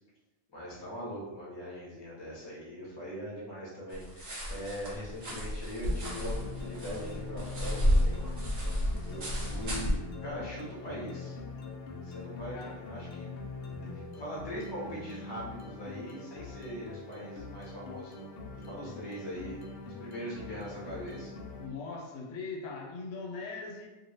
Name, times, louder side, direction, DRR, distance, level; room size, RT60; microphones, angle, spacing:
voice 1, 0.5-8.2 9.0-11.4 12.0-13.3 13.9-21.3, equal, 25° left, -6 dB, 0.8 m, -41 dB
sound 1, 3.9-9.9, equal, 60° right, 1.1 m, -31 dB
sound 2, 5.9-21.7, left 4 dB, 60° left, 0.7 m, -43 dB
voice 2, 21.6-23.9, left 4 dB, 85° left, -1 dB, 1.0 m, -40 dB
3.1 x 2.6 x 2.7 m, 1.1 s
omnidirectional pair, 1.3 m